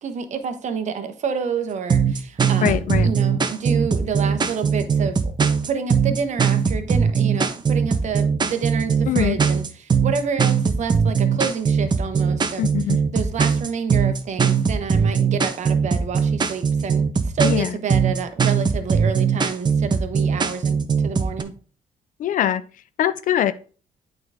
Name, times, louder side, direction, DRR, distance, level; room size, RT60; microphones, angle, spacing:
voice 1, 0.0-5.3 5.6-12.7 13.1-21.5, right 6 dB, 55° right, 1.0 m, -29 dB
sound 1, 1.9-21.4, right 6 dB, 30° right, 0.7 m, -20 dB
voice 2, 2.6-3.1 9.1-9.4 12.6-13.0 17.4-17.7 22.2-22.6 23.0-23.5, left 11 dB, 65° left, 0.4 m, -22 dB
8.7 x 3.9 x 3.5 m
cardioid pair, 120°, 15 cm